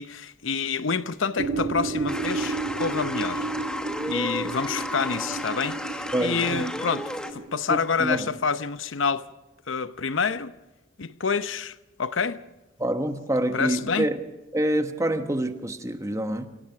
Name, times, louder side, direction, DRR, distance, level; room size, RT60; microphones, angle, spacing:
voice 1, 0.0-3.5 4.1-9.3 9.7-10.5 11.0-12.4 13.5-14.1, left 5 dB, 80° left, 0.8 m, -28 dB
sound 1, 1.4-7.6, right 3 dB, 60° right, 1.9 m, -32 dB
sound 2, 2.1-7.3, left 1 dB, 5° left, 1.3 m, -33 dB
voice 2, 6.1-6.7 7.7-8.3 12.8-14.2 14.5-16.5, right 1 dB, 15° right, 1.2 m, -26 dB
27.0 x 17.0 x 5.9 m
head